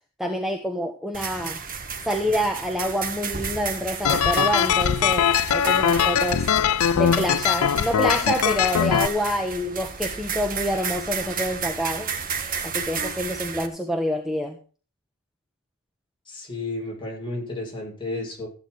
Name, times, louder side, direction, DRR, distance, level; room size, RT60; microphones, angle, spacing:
voice 1, 0.2-1.6 2.0-6.5 6.9-12.1 12.6-14.6, equal, ahead, 3 dB, 1.3 m, -27 dB
sound 1, 1.1-13.7, right 6 dB, 40° right, 1.6 m, -33 dB
sound 2, 4.0-9.1, left 8 dB, 85° left, 0.5 m, -21 dB
voice 2, 16.3-18.5, left 2 dB, 25° left, -2 dB, 7.1 m, -32 dB
15.0 x 9.1 x 4.2 m, 0.38 s
head